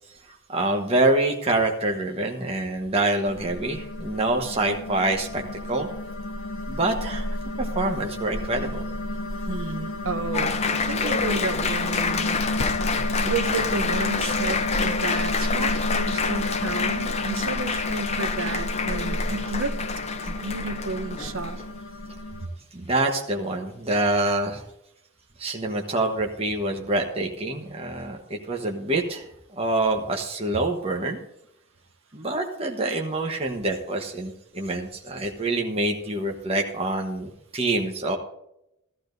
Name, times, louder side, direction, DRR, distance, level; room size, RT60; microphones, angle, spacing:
voice 1, 0.3-5.4 5.7-5.9 6.7-8.8 22.7-24.6 25.4-31.2 32.1-38.2, right 2 dB, 25° right, 2 dB, 1.1 m, -26 dB
sound 1, 3.3-22.5, left 1 dB, 65° left, 1.1 m, -31 dB
voice 2, 9.5-12.7 13.2-19.8 20.3-21.6, right 3 dB, 65° right, 10 dB, 0.8 m, -32 dB
Applause, 10.3-21.7, left 5 dB, 30° left, 0.6 m, -28 dB
14.0 x 14.0 x 2.6 m, 0.82 s
head